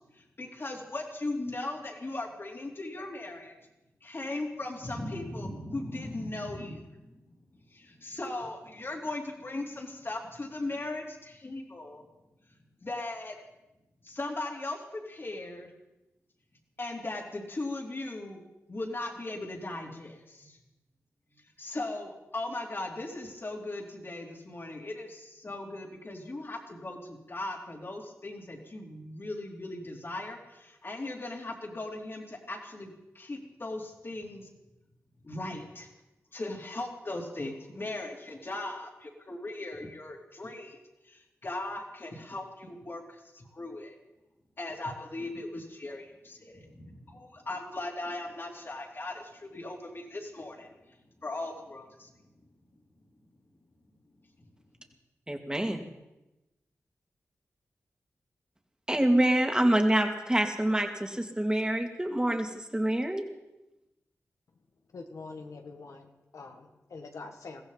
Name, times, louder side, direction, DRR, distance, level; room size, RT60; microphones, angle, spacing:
voice 1, 0.1-3.5 4.0-7.1 7.7-12.0 12.8-13.3 14.0-15.7 16.8-18.4 18.7-20.6 21.6-34.5 35.2-35.9 36.3-40.8 41.1-43.9 44.6-51.0 51.2-52.1, left 2 dB, 45° left, 3.3 m, -38 dB
voice 2, 55.3-55.8 58.9-63.2, right 1 dB, 15° right, 2.5 m, -26 dB
voice 3, 64.9-67.6, left 3 dB, 80° left, 1.8 m, -45 dB
21.5 x 15.5 x 4.1 m
cardioid pair, 50°, 5 cm